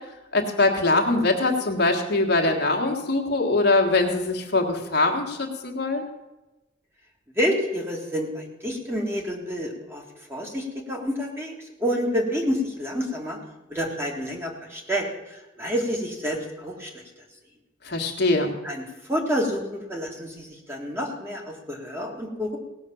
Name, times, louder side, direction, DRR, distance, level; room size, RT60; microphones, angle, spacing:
voice 1, 0.3-6.0 17.9-18.5, left 2 dB, 55° left, 2 dB, 1.8 m, -22 dB
voice 2, 7.4-10.0 10.3-13.4 13.7-17.0 18.6-22.6, equal, 15° right, 0 dB, 2.0 m, -29 dB
17.5 x 6.4 x 7.1 m, 1.1 s
head